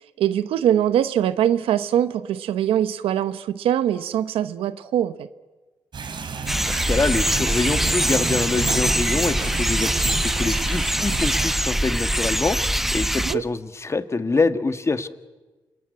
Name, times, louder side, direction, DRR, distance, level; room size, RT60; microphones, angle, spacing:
voice 1, 0.0-5.3 13.2-13.4, right 10 dB, 85° right, 12 dB, 0.9 m, -22 dB
sound 1, 5.9-11.5, right 5 dB, 55° right, 4.0 m, -31 dB
sound 2, 6.5-13.3, equal, 5° right, 0.9 m, -23 dB
voice 2, 6.7-15.1, left 3 dB, 30° left, 11 dB, 1.5 m, -25 dB
28.0 x 21.0 x 9.6 m, 1.2 s
cardioid pair, 75°, 9 cm